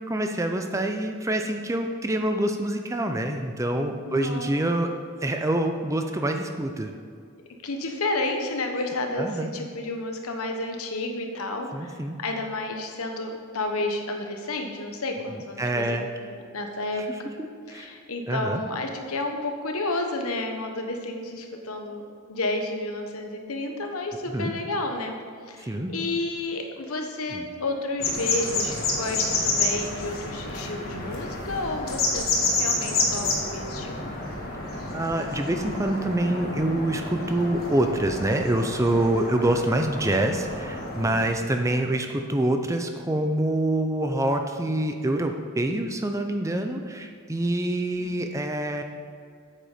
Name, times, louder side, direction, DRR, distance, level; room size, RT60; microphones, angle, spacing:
voice 1, 0.1-4.9 5.2-6.9 9.2-9.5 11.7-12.2 15.3-16.1 17.0-17.9 18.3-18.6 24.3-24.5 25.6-25.9 27.3-27.5 34.9-48.8, right 1 dB, 15° right, 5 dB, 0.5 m, -26 dB
voice 2, 4.0-4.6 7.6-15.8 16.5-17.3 17.7-22.0 22.3-25.1 25.5-33.9 41.1-41.5 48.0-48.1, left 2 dB, 75° left, 4 dB, 1.2 m, -31 dB
sound 1, 28.0-41.3, left 2 dB, 45° left, 1.6 m, -29 dB
8.7 x 7.9 x 5.1 m, 2.1 s
head